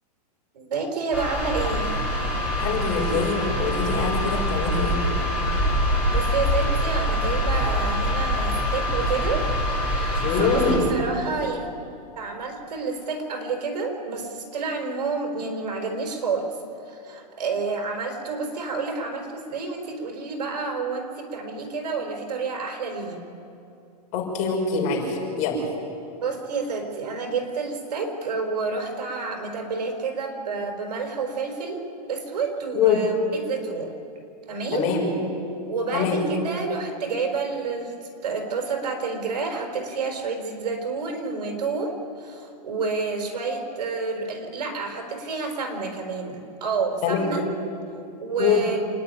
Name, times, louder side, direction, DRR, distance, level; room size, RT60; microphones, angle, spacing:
voice 1, 0.5-1.9 6.1-9.4 9.9-11.7 12.2-16.6 16.8-23.2 26.2-31.8 32.1-33.9 34.5-34.9 35.7-47.4 48.2-48.8, right 4 dB, 75° right, 3 dB, 4.5 m, -29 dB
sound 1, 1.1-10.8, equal, 5° right, 5.4 m, -24 dB
voice 2, 2.6-5.0 10.2-10.9 24.1-25.6 32.7-33.0 34.7-35.1 35.9-36.2 47.0-47.4 48.4-48.6, left 6 dB, 35° left, -1 dB, 6.3 m, -24 dB
28.0 x 10.5 x 9.8 m, 2.6 s
hypercardioid pair, 150°, 21 cm